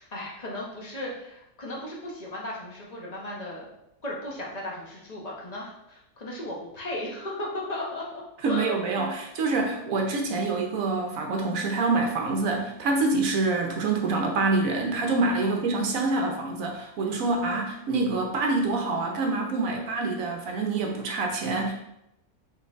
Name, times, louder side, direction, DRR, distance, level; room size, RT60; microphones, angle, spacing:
voice 1, 0.0-3.7 4.0-8.2 8.5-9.2 9.6-9.7 15.4-15.7, left 1 dB, 35° left, -3 dB, 0.7 m, -36 dB
voice 2, 8.4-21.7, right 3 dB, 70° right, 1 dB, 1.0 m, -26 dB
5.7 x 3.1 x 2.4 m, 0.82 s
omnidirectional pair, 1.6 m